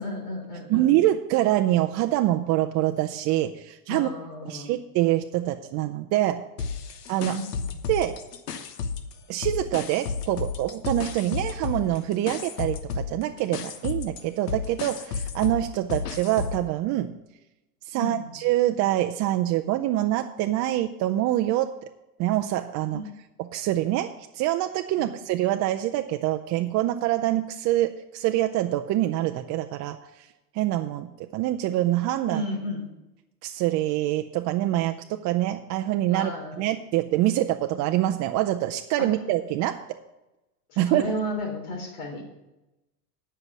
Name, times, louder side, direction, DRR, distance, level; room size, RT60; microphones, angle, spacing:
voice 1, 0.0-0.9 3.9-4.7 7.3-7.8 17.9-18.3 22.9-23.0 25.0-25.1 32.3-32.9 36.1-36.6 39.0-39.1 40.7-42.3, equal, 60° left, 2 dB, 3.6 m, -33 dB
voice 2, 0.7-4.1 4.5-6.4 7.1-7.4 7.9-8.2 9.3-17.1 17.9-21.7 22.2-23.0 23.5-30.3 30.5-32.4 33.4-36.3 36.6-39.8 40.8-41.1, right 14 dB, 40° right, 7 dB, 0.5 m, -25 dB
sound 1, 6.6-9.1 9.4-16.7, left 5 dB, 90° left, 1.1 m, -32 dB
9.9 x 5.6 x 8.3 m, 0.98 s
hypercardioid pair, 100°, 46 cm